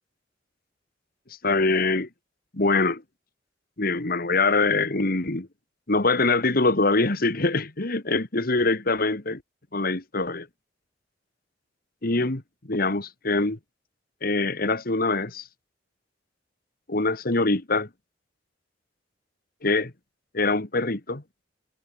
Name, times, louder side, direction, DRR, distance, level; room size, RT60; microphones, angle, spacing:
voice 1, 1.3-2.1 2.5-3.0 3.8-5.5 5.9-9.4 9.7-10.5 12.0-13.6 14.2-15.5 16.9-17.9 19.6-19.9 20.3-21.2, left 3 dB, 55° left, 2.0 m, -24 dB
head